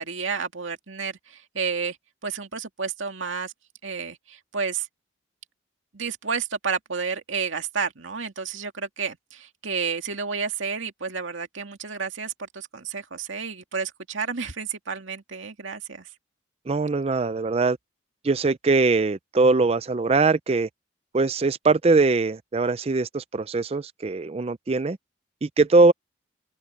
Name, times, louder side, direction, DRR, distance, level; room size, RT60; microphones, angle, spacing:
voice 1, 0.0-2.0 2.2-3.5 3.8-4.9 5.9-16.1, right 5 dB, 85° right, 2.2 m, -31 dB
voice 2, 16.7-17.8 18.2-20.7 21.1-25.0 25.4-25.9, right 3 dB, 30° right, 0.4 m, -21 dB
open air
head